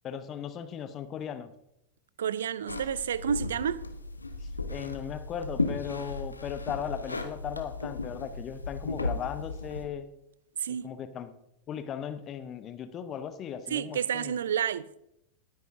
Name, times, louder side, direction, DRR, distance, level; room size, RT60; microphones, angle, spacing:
voice 1, 0.0-1.5 4.4-10.1 10.7-11.3 11.7-14.3, left 8 dB, 30° left, 1.0 m, -37 dB
voice 2, 2.2-3.8 10.6-10.9 13.7-14.9, right 8 dB, 65° right, 0.5 m, -30 dB
sound 1, 2.7-9.9, left 3 dB, 80° left, 1.0 m, -35 dB
19.0 x 9.6 x 2.7 m
figure-of-eight pair, 90°, 0 cm